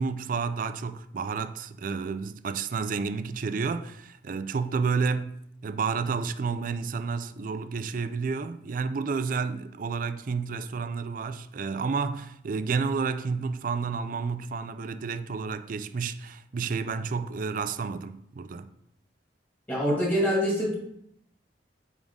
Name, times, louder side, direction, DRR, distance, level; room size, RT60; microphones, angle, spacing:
voice 1, 0.0-5.3 5.6-18.7, right 5 dB, 50° right, 0.4 m, -30 dB
voice 2, 19.7-20.7, equal, 10° left, 2.2 m, -25 dB
9.0 x 3.7 x 3.6 m
head